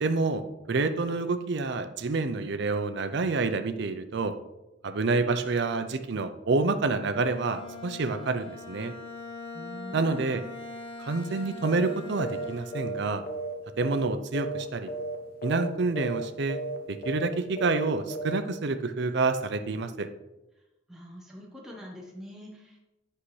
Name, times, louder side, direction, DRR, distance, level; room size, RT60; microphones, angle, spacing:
voice 1, 0.0-4.3 4.8-8.9 9.9-10.4 11.0-13.2 13.8-14.9 15.4-16.6 16.9-20.1, right 3 dB, 65° right, 9 dB, 0.6 m, -28 dB
Bowed string instrument, 7.1-13.2, left 3 dB, 30° left, 1.1 m, -42 dB
voice 2, 9.5-10.2 20.9-22.8, equal, ahead, -3 dB, 0.9 m, -44 dB
sound 1, 11.6-11.9 12.2-12.5 12.7-14.1 14.3-14.6 14.9-15.2 15.4-15.7 16.0-16.2 16.5-16.8 17.0-17.3 17.6-17.8 18.1-18.4, right 2 dB, 55° left, 0.8 m, -34 dB
8.4 x 5.7 x 3.2 m, 0.99 s
head